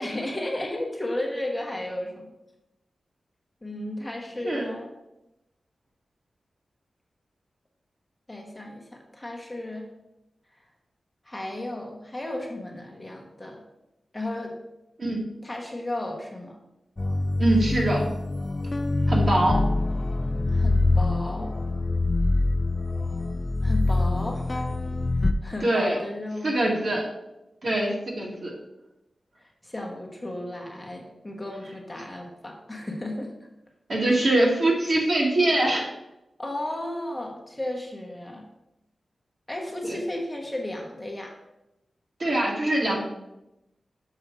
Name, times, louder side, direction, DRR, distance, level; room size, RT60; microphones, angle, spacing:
voice 1, 0.0-2.3 3.6-4.9 8.3-9.9 11.2-13.6 14.1-14.6 15.4-16.6 20.5-21.5 23.6-24.7 25.4-26.8 27.7-27.9 29.4-33.3 34.1-34.2 36.4-38.4 39.5-41.3, left 1 dB, 15° left, 0 dB, 1.2 m, -34 dB
sound 1, 17.0-25.3, left 2 dB, 30° left, 0.4 m, -24 dB
voice 2, 17.4-18.0 19.1-19.6 25.6-26.0 26.4-27.1 27.6-28.5 33.9-35.9 42.2-43.0, right 1 dB, 50° right, -2 dB, 2.0 m, -23 dB
6.7 x 5.5 x 4.6 m, 0.92 s
wide cardioid pair, 120°, 0 cm